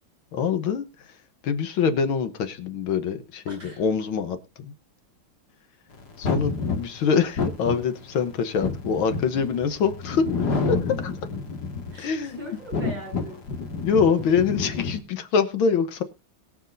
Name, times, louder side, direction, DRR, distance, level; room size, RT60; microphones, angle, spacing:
voice 1, 0.3-1.2 1.4-4.7 6.2-10.2 10.6-11.1 12.0-12.4 13.8-16.0, left 6 dB, 75° left, 10 dB, 1.8 m, -24 dB
voice 2, 3.5-3.8 11.9-13.4, equal, 50° right, -2 dB, 8.6 m, -40 dB
sound 1, 6.2-12.1 12.5-15.0, left 4 dB, 50° left, 2.4 m, -29 dB
22.0 x 7.4 x 2.6 m, 0.27 s
omnidirectional pair, 2.3 m